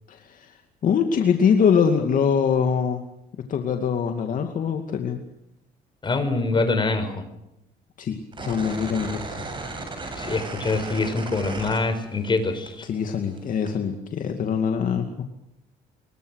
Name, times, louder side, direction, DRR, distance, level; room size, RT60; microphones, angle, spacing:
voice 1, 0.1-3.0 3.5-5.2 8.0-9.4 12.9-15.2, left 7 dB, 50° left, 5 dB, 2.4 m, -23 dB
voice 2, 6.0-7.3 10.1-12.9, left 3 dB, 30° left, 8 dB, 5.5 m, -24 dB
sound 1, 8.3-12.4 12.7-13.7, right 3 dB, 30° right, 7.8 m, -35 dB
26.5 x 22.5 x 6.6 m, 0.86 s
cardioid pair, 110°, 17 cm